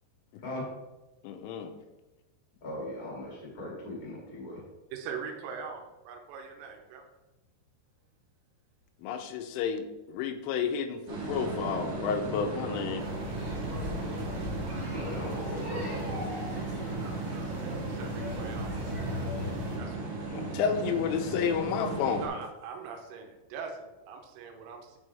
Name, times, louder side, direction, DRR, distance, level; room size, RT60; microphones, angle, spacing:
voice 1, 1.2-1.7 9.0-13.0 20.3-22.3, left 6 dB, 85° left, 7 dB, 3.2 m, -31 dB
voice 2, 2.6-4.6 14.9-16.3, left 1 dB, 40° left, -4 dB, 1.3 m, -39 dB
voice 3, 4.9-7.0 16.9-18.8 19.8-20.0 22.2-25.0, right 6 dB, 85° right, 3 dB, 3.3 m, -42 dB
sound 1, 11.1-22.3, right 3 dB, 50° right, 2.2 m, -36 dB
sound 2, 13.0-19.8, left 1 dB, 30° right, 2.7 m, -37 dB
9.4 x 5.4 x 3.4 m, 1.0 s
omnidirectional pair, 5.7 m